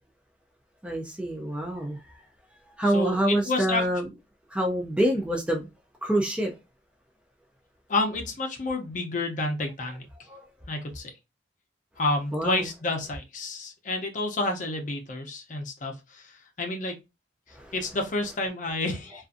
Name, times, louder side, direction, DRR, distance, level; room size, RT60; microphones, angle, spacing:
voice 1, 0.8-2.0 2.8-4.1 4.5-5.7 6.0-6.5 10.3-10.4 12.3-12.7 17.5-17.7, right 1 dB, 5° right, 0.4 m, -26 dB
voice 2, 2.9-3.8 7.9-10.1 10.7-11.1 12.0-17.0 17.7-19.3, left 2 dB, 40° left, 0.6 m, -30 dB
2.5 x 2.4 x 2.4 m
head